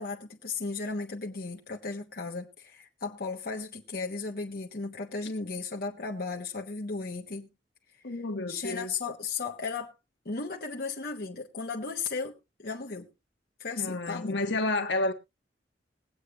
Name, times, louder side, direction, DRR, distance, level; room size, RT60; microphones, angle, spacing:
voice 1, 0.0-7.5 8.5-9.9 10.2-13.1 13.6-14.4, left 4 dB, 55° left, 1.2 m, -35 dB
voice 2, 8.0-8.9 13.8-15.1, left 2 dB, 75° left, 1.5 m, -30 dB
21.0 x 8.4 x 2.5 m
head